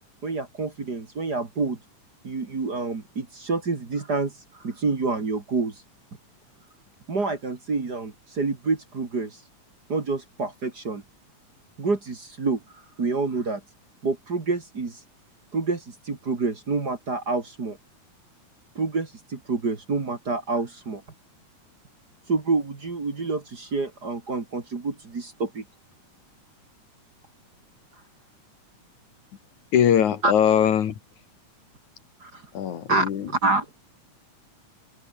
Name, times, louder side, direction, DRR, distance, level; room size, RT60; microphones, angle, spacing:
voice 1, 0.2-1.8 2.2-5.8 7.1-9.4 9.9-11.0 11.8-12.6 13.0-13.6 14.0-15.0 15.5-17.8 18.7-21.0 22.3-25.6 30.2-30.3 32.2-32.4 32.9-33.7, right 3 dB, 35° right, 2.6 m, -27 dB
voice 2, 29.7-30.9 32.5-33.4, left 9 dB, 70° left, 3.2 m, -21 dB
open air
omnidirectional pair, 3.6 m